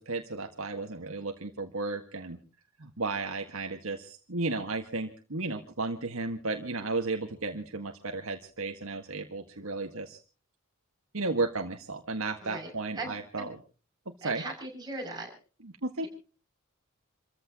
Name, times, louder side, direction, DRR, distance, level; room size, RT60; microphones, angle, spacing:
voice 1, 0.0-2.4 2.8-10.2 11.1-13.6 14.2-14.4 15.6-16.1, right 3 dB, 75° right, 4 dB, 1.7 m, -34 dB
voice 2, 12.9-13.5 14.2-15.3, right 2 dB, 20° right, 0 dB, 6.5 m, -39 dB
29.0 x 15.0 x 2.9 m, 0.37 s
head